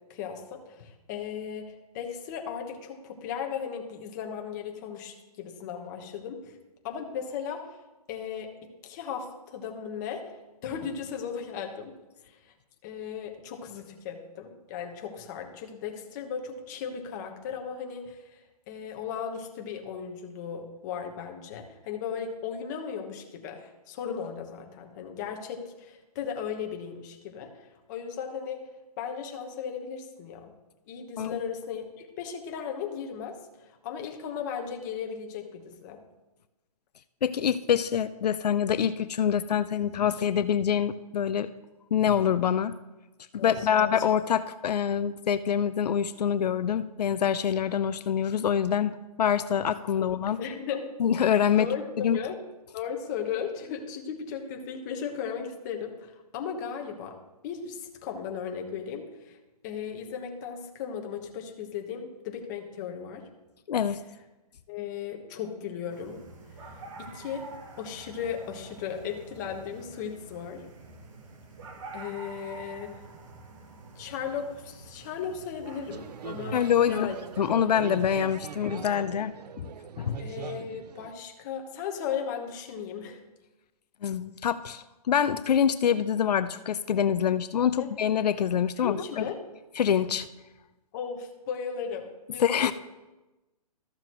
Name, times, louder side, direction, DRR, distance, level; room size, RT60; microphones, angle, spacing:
voice 1, 0.1-6.6 6.8-7.7 8.1-8.5 8.8-10.3 10.6-11.9 12.2-12.4 12.8-18.4 18.7-28.6 29.0-30.5 30.9-33.4 33.8-36.0 43.4-43.9 50.0-50.1 50.4-50.9 51.5-52.4 52.7-57.2 57.4-59.4 59.6-63.2 64.7-66.2 67.0-67.4 67.8-70.7 71.9-73.0 73.9-76.6 76.9-77.2 80.2-83.2 87.8-87.9 88.8-89.4 90.9-92.7, left 7 dB, 30° left, 2 dB, 1.1 m, -36 dB
voice 2, 37.2-41.5 41.9-42.7 43.3-50.4 51.0-51.7 52.0-52.2 63.7-64.0 76.5-77.1 77.4-79.3 80.0-80.2 84.0-89.2 89.8-90.3 92.4-92.7, left 8 dB, 85° left, 13 dB, 0.5 m, -25 dB
sound 1, 65.9-77.5, right 3 dB, 50° right, 1.5 m, -47 dB
sound 2, 75.9-81.1, right 8 dB, 85° right, 0.5 m, -41 dB
13.5 x 6.7 x 3.0 m, 1.1 s
hypercardioid pair, 160°, 20 cm